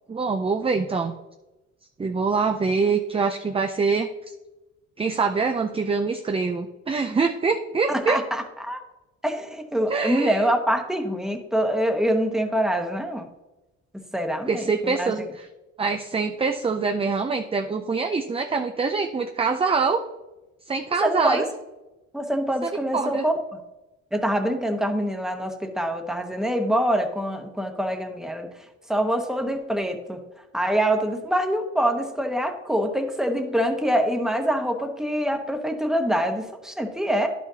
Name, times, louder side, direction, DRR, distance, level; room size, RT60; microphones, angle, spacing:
voice 1, 0.1-1.1 2.0-4.1 5.0-8.2 9.9-10.5 14.5-15.5 15.8-20.0 20.7-21.4 22.6-23.2, right 4 dB, 20° right, 5 dB, 0.5 m, -24 dB
voice 2, 7.9-8.8 9.2-13.3 14.1-15.3 21.0-21.5 22.1-23.3 24.1-28.5 28.9-30.2 30.5-37.3, equal, ahead, 4 dB, 1.1 m, -25 dB
10.5 x 6.2 x 2.8 m, 1.0 s
cardioid pair, 90°, 30 cm